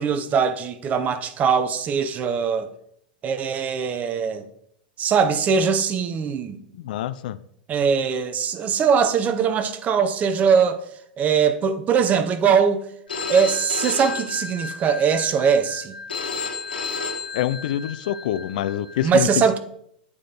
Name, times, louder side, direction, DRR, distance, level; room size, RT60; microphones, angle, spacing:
voice 1, 0.0-2.7 3.2-4.4 5.0-6.6 7.7-10.8 11.2-12.8 13.3-16.0 19.0-19.6, right 6 dB, 30° right, 0.6 m, -21 dB
voice 2, 6.7-7.4 17.3-19.3, left 12 dB, 65° left, 0.3 m, -26 dB
Telephone, 13.1-19.1, left 4 dB, 85° left, 1.3 m, -32 dB
8.4 x 3.2 x 4.0 m
hypercardioid pair, 95°, 5 cm